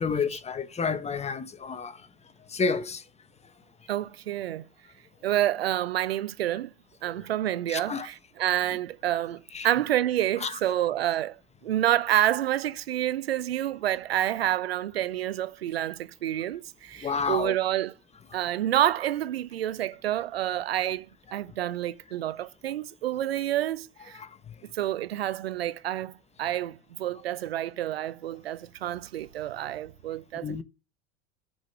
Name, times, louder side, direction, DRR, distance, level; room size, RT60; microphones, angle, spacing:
voice 1, 0.0-2.1 2.5-3.0 7.1-7.2 7.7-8.1 9.1-9.2 9.5-9.7 10.4-10.6 17.0-17.5 24.1-24.5 30.3-30.6, left 5 dB, 20° left, 1.1 m, -30 dB
voice 2, 3.9-4.6 5.2-6.7 7.0-11.4 11.6-17.9 18.3-21.1 21.3-24.2 24.7-26.1 26.4-30.6, right 12 dB, 80° right, 0.7 m, -28 dB
10.0 x 5.1 x 5.9 m
hypercardioid pair, 85°, 30 cm